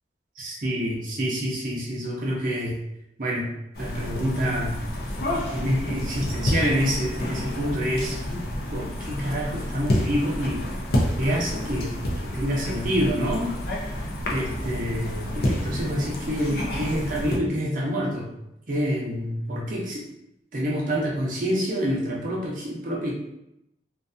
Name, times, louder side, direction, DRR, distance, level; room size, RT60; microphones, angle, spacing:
voice 1, 0.4-2.8 3.2-3.5 3.8-4.8 5.5-8.2 8.7-10.7 11.2-11.9 12.2-13.6 14.3-18.3 18.7-20.1 20.5-23.1, equal, 45° right, -4 dB, 0.7 m, -27 dB
sound 1, 3.7-17.4, left 1 dB, 60° left, 0.5 m, -29 dB
2.5 x 2.3 x 2.5 m, 0.85 s
head